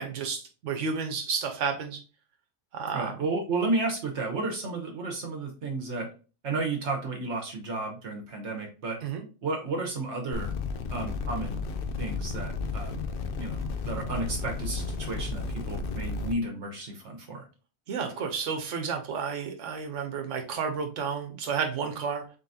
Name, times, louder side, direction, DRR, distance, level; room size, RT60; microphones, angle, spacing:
voice 1, 0.0-2.0 2.7-3.2 9.0-9.2 17.9-22.4, right 6 dB, 90° right, 5 dB, 1.1 m, -31 dB
voice 2, 2.9-6.1 6.4-9.0 9.4-10.5 10.9-11.6 12.0-13.0 13.4-17.5, right 3 dB, 70° right, 1 dB, 1.2 m, -32 dB
sound 1, 10.3-16.3, left 4 dB, 60° left, 0.7 m, -33 dB
4.0 x 3.8 x 2.7 m, 0.35 s
omnidirectional pair, 1.2 m